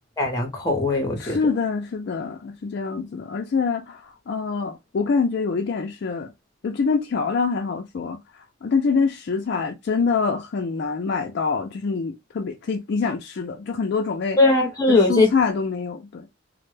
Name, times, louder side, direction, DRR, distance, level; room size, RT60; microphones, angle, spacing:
voice 1, 0.2-1.4 14.4-15.3, left 2 dB, 15° left, 0.7 m, -19 dB
voice 2, 1.2-6.3 6.6-8.2 8.6-14.4 14.9-16.3, left 5 dB, 55° left, 0.3 m, -25 dB
2.1 x 2.1 x 3.1 m
head